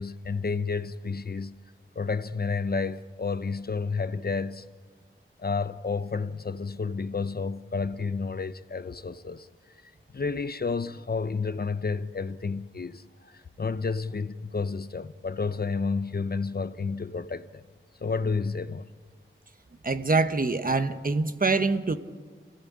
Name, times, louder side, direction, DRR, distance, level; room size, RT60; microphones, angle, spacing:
voice 1, 0.0-1.5 2.0-4.6 5.4-9.5 10.1-17.6 18.0-18.9, left 4 dB, 50° left, 0.7 m, -31 dB
voice 2, 19.8-22.0, right 3 dB, 45° right, 1.2 m, -25 dB
27.0 x 17.5 x 8.6 m
wide cardioid pair, 95°, 21 cm